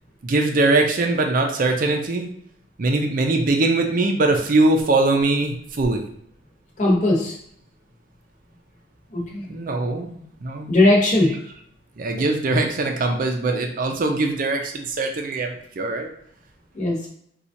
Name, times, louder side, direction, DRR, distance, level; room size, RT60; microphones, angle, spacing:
voice 1, 0.2-2.3 2.8-6.1 9.5-10.7 12.0-16.1, right 2 dB, 50° right, 3 dB, 0.5 m, -21 dB
voice 2, 6.8-7.4 9.1-9.5 10.7-11.3 16.7-17.1, left 2 dB, 40° left, -2 dB, 1.0 m, -18 dB
4.3 x 2.4 x 2.6 m, 0.70 s
head